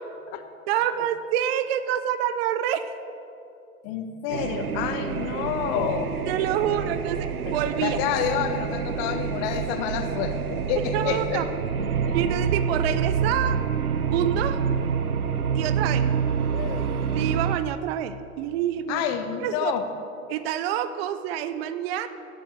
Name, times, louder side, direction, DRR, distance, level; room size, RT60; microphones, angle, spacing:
voice 1, 0.7-2.9 6.3-8.0 10.9-11.5 12.1-13.6 14.1-14.6 15.5-16.1 17.1-19.0 19.4-19.7 20.3-22.1, right 10 dB, 45° right, 12 dB, 0.7 m, -27 dB
voice 2, 3.8-6.2 6.6-6.8 7.4-11.5 12.0-12.2 16.5-16.9 18.9-19.9, left 8 dB, 40° left, 9 dB, 1.1 m, -29 dB
sound 1, 4.3-17.6, right 6 dB, 90° right, 0.8 m, -27 dB
17.0 x 7.1 x 6.2 m, 2.7 s
hypercardioid pair, 100°, 43 cm